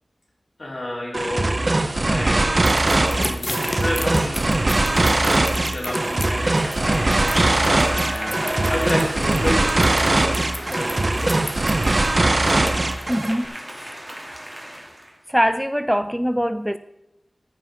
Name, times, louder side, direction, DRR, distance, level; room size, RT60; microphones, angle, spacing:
voice 1, 0.6-1.5 2.0-7.7 8.1-11.4, left 1 dB, 65° left, 4.0 m, -31 dB
sound 1, 1.1-13.4, right 2 dB, 50° right, 0.7 m, -21 dB
sound 2, 2.6-13.3, left 1 dB, 40° left, 1.3 m, -33 dB
sound 3, 2.8-5.2 6.2-15.1, right 1 dB, 20° right, 2.6 m, -34 dB
voice 2, 13.1-14.0 15.3-16.8, equal, 5° right, 0.4 m, -23 dB
13.5 x 5.8 x 5.1 m
wide cardioid pair, 45°, 0 cm